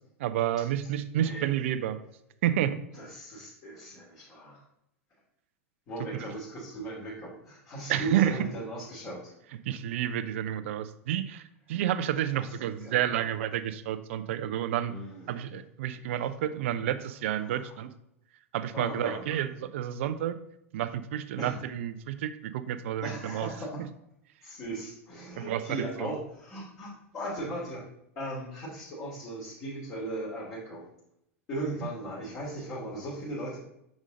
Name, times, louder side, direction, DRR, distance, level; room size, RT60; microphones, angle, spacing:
voice 1, 0.2-2.0 2.4-2.8 7.9-8.4 9.7-14.9 15.3-17.9 18.5-20.4 20.7-23.5 25.4-26.1, right 11 dB, 60° right, 13 dB, 0.5 m, -30 dB
voice 2, 1.1-1.5 2.9-4.6 5.9-9.3 12.3-13.1 14.9-15.5 17.4-17.8 18.7-19.4 21.4-21.6 23.0-23.8 24.4-27.8 28.1-30.9 31.5-33.6, right 1 dB, 40° left, -8 dB, 2.6 m, -38 dB
6.2 x 5.2 x 3.8 m, 0.79 s
hypercardioid pair, 95°, 8 cm